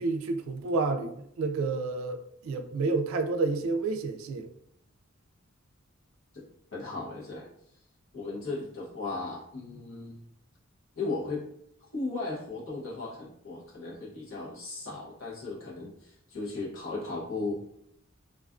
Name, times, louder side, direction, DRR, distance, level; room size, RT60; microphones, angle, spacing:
voice 1, 0.0-4.5, right 3 dB, 80° right, 0.3 m, -30 dB
voice 2, 6.7-7.5 8.1-10.2 11.0-11.5 11.9-17.6, left 3 dB, 75° left, 0.9 m, -36 dB
2.4 x 2.3 x 2.4 m
head